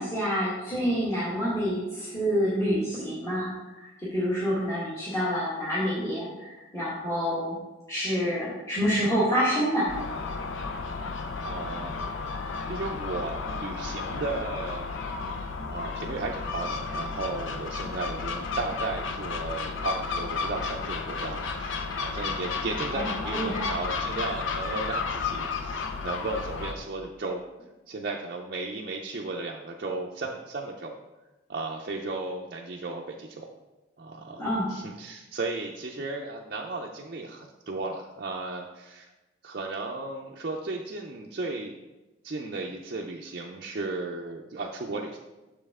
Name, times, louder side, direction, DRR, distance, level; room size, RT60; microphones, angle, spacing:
voice 1, 0.0-3.5 3.8-7.5 7.9-9.9 22.9-23.7 34.4-34.7, equal, 15° left, -9 dB, 1.6 m, -27 dB
Gull seagull, 9.9-26.7, left 4 dB, 75° left, 0.6 m, -33 dB
voice 2, 11.4-12.0 12.7-14.9 15.7-27.4 27.9-31.0 31.5-33.5 34.0-34.4 34.7-39.1 39.4-41.7 42.2-45.2, right 3 dB, 50° right, -1 dB, 0.5 m, -35 dB
6.7 x 5.4 x 3.6 m, 1.1 s
head